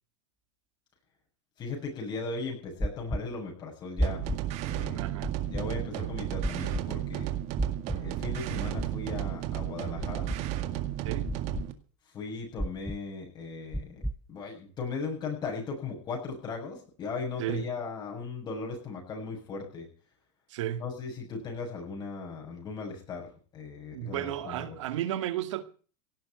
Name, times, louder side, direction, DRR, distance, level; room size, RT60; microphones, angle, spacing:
voice 1, 1.6-4.2 4.7-5.1 5.5-7.3 8.0-10.3 12.1-14.0 14.3-19.9 20.8-24.8, left 4 dB, 30° left, 7.0 m, -37 dB
sound 1, 2.8-3.2 4.0-4.4 5.2-5.6 6.4-6.8 7.6-8.0 8.8-9.2 10.0-10.4 11.3-11.7 12.6-13.0 13.7-14.2, right 1 dB, ahead, 0.6 m, -30 dB
sound 2, 4.0-11.7, right 12 dB, 45° right, 2.0 m, -33 dB
voice 2, 4.9-5.3 11.0-11.3 17.4-17.7 20.5-20.8 23.9-25.6, right 12 dB, 80° right, 2.0 m, -33 dB
17.5 x 7.3 x 9.4 m
supercardioid pair, 140°, 15 cm